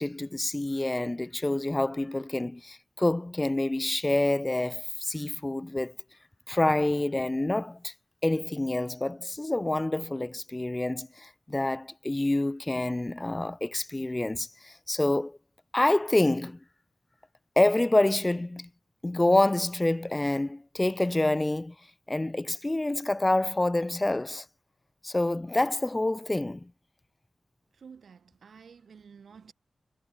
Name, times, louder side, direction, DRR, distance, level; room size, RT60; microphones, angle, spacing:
voice 1, 0.0-5.9 6.5-7.9 8.2-15.4 15.7-16.6 17.6-18.7 19.0-21.7 22.1-24.5 25.0-26.7, left 2 dB, 15° left, 0.8 m, -27 dB
voice 2, 27.8-29.5, right 6 dB, 90° right, 7.8 m, -51 dB
wide cardioid pair, 160°, 0 cm